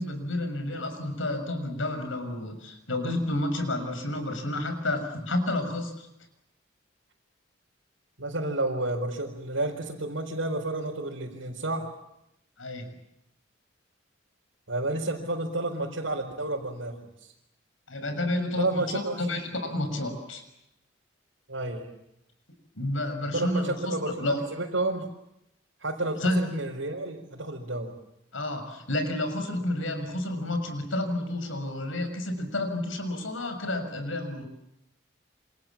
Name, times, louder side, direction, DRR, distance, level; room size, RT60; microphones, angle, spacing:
voice 1, 0.0-6.1 12.6-12.8 17.9-20.4 22.7-23.9 24.2-24.4 26.2-26.4 28.3-34.4, left 1 dB, 85° left, 7 dB, 6.6 m, -30 dB
voice 2, 8.2-11.9 14.7-17.3 18.6-19.3 21.5-21.9 23.3-25.1 25.8-27.9, right 2 dB, 85° right, -3 dB, 4.5 m, -31 dB
29.0 x 27.0 x 7.3 m, 0.83 s
head